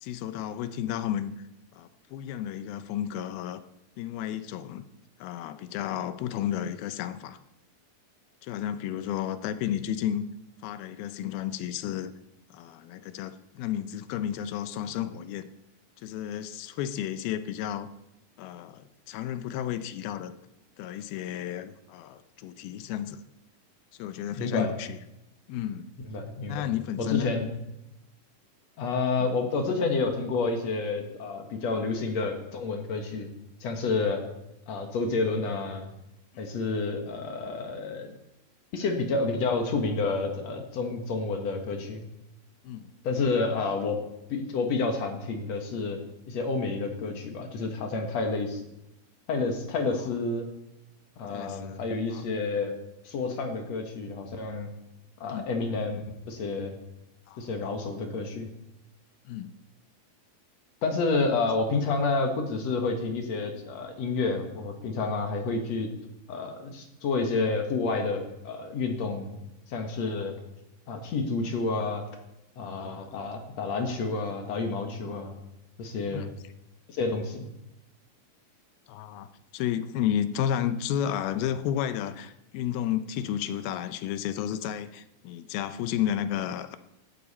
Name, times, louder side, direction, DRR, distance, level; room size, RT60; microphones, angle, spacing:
voice 1, 0.0-1.3 1.7-3.6 4.0-4.8 5.2-7.4 8.4-10.3 10.6-12.1 12.5-15.5 16.0-17.9 18.4-20.3 20.8-23.2 24.0-25.0 25.5-25.9 26.5-27.3 36.3-36.4 42.6-42.9 51.3-51.8 52.1-52.2 55.3-55.5 57.3-57.4 59.3-59.5 72.8-73.2 76.1-76.3 78.9-79.3 79.5-86.8, left 10 dB, 85° left, 12 dB, 2.6 m, -32 dB
voice 2, 24.3-24.7 26.1-26.7 27.0-27.5 28.8-33.3 33.6-34.2 34.7-35.9 36.4-38.1 38.7-42.0 43.0-44.0 44.3-46.0 46.3-48.6 49.3-50.5 51.2-52.7 53.0-54.7 55.2-56.0 56.3-56.8 57.4-58.5 60.8-65.9 66.3-69.4 69.7-70.3 70.9-72.1 72.6-75.3 75.8-76.3 76.9-77.5, left 3 dB, 55° left, 4 dB, 2.2 m, -29 dB
16.5 x 12.0 x 4.2 m, 0.88 s
omnidirectional pair, 4.3 m